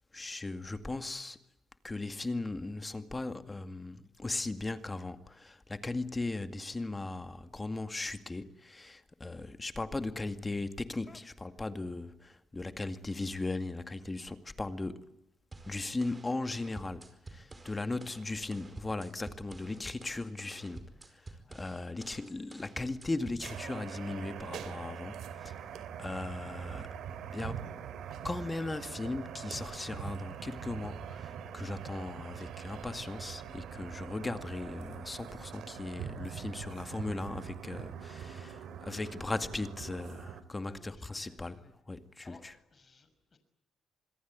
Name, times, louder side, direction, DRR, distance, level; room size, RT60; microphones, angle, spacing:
voice 1, 0.1-1.4 1.8-15.1 15.7-27.0 27.3-27.7 28.2-41.6 41.9-42.5, left 2 dB, 20° left, 2.2 m, -38 dB
sound 1, 15.5-23.5, right 2 dB, 25° right, 5.0 m, -50 dB
voice 2, 21.4-21.9 38.5-39.0 40.6-41.7 42.2-43.4, left 4 dB, 35° left, 5.9 m, -60 dB
sound 2, 23.4-40.4, right 8 dB, 75° right, 2.9 m, -43 dB
sound 3, 32.1-37.5, right 6 dB, 50° right, 2.1 m, -60 dB
27.0 x 21.5 x 9.5 m
cardioid pair, 90°, 0 cm